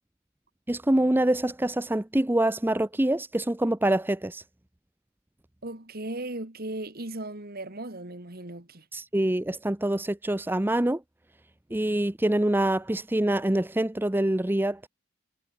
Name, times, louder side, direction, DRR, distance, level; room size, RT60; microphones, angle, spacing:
voice 1, 0.7-4.4 8.9-11.0 11.7-14.8, right 1 dB, 10° right, 0.6 m, -25 dB
voice 2, 5.6-8.8, right 2 dB, 45° right, 2.6 m, -37 dB
head